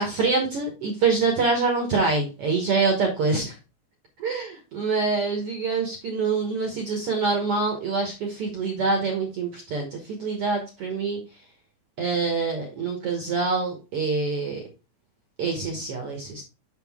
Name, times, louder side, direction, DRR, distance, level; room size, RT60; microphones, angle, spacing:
voice 1, 0.0-3.6 4.2-11.2 12.0-14.7 15.4-16.4, right 4 dB, 65° right, 2 dB, 1.4 m, -25 dB
6.8 x 6.3 x 3.4 m, 0.30 s
omnidirectional pair, 4.3 m